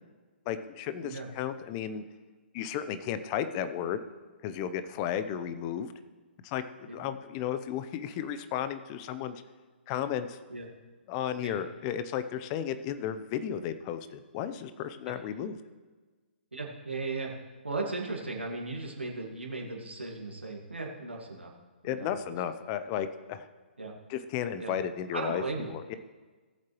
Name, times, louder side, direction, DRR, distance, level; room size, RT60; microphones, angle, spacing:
voice 1, 0.5-2.0 2.5-4.0 4.4-5.9 6.4-9.4 9.9-10.4 11.1-15.6 21.8-23.5 24.1-25.4 25.7-25.9, left 9 dB, 30° left, 11 dB, 0.7 m, -34 dB
voice 2, 16.5-17.3 17.6-21.5 21.8-22.2 23.8-23.9 24.6-24.7 25.1-25.7, right 3 dB, 85° right, -1 dB, 1.9 m, -36 dB
17.5 x 7.4 x 3.1 m, 1.4 s
figure-of-eight pair, 130°, 6 cm